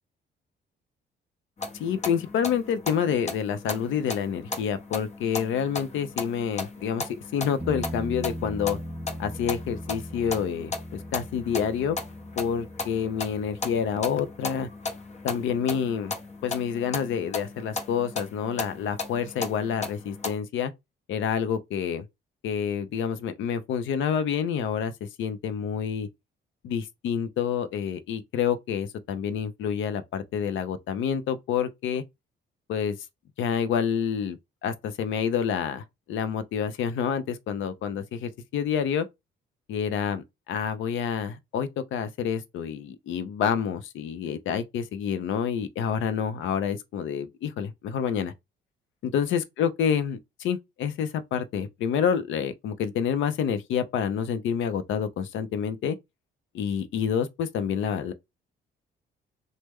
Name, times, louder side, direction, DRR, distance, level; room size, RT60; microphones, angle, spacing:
sound 1, 1.6-20.4, left 3 dB, 35° left, 0.7 m, -36 dB
voice 1, 1.8-8.8 9.2-12.0 12.4-14.7 15.2-16.1 16.4-20.7 21.1-22.0 22.4-26.1 26.6-32.0 32.7-33.0 33.4-39.1 39.7-48.3 49.0-56.0 56.5-58.1, left 8 dB, 75° left, 0.6 m, -28 dB
sound 2, 7.6-15.2 18.2-18.3, equal, 10° right, 0.4 m, -39 dB
3.1 x 2.1 x 3.4 m
cardioid pair, 90°, 20 cm